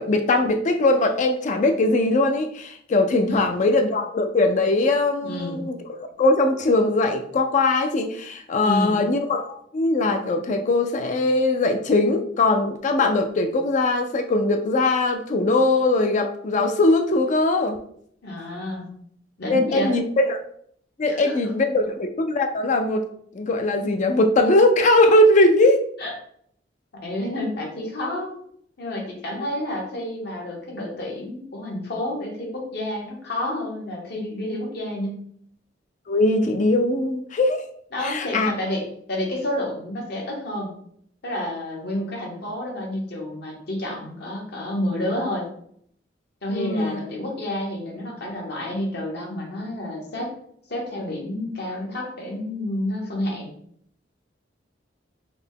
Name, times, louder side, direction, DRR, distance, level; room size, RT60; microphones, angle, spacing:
voice 1, 0.0-17.8 19.5-20.4 21.0-23.1 23.3-25.8 36.1-37.6 38.0-38.5 46.5-47.0, left 2 dB, 40° left, 6 dB, 0.4 m, -20 dB
voice 2, 5.2-5.6 8.6-9.0 18.2-18.9 19.4-20.0 21.0-21.4 26.0-26.1 26.9-28.4 28.8-35.2 37.9-40.7 41.2-45.5 46.4-50.3 50.7-53.5, left 1 dB, 60° left, -1 dB, 1.1 m, -29 dB
4.0 x 2.1 x 3.5 m, 0.67 s
head